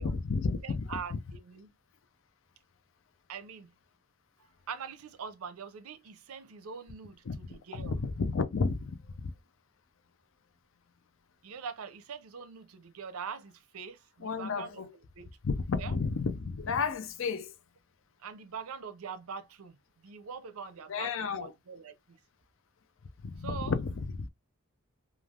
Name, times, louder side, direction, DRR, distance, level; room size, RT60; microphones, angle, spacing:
voice 1, 0.0-1.2 7.2-9.3 14.2-14.9 15.4-17.5 20.9-21.5 23.2-24.3, left 4 dB, 60° left, 0.4 m, -32 dB
voice 2, 0.6-1.7 3.3-3.7 4.7-7.9 11.4-15.3 15.8-15.9 18.2-19.8 20.0-22.2 23.4-23.7, right 6 dB, 80° right, 0.5 m, -43 dB
3.2 x 2.3 x 2.3 m
head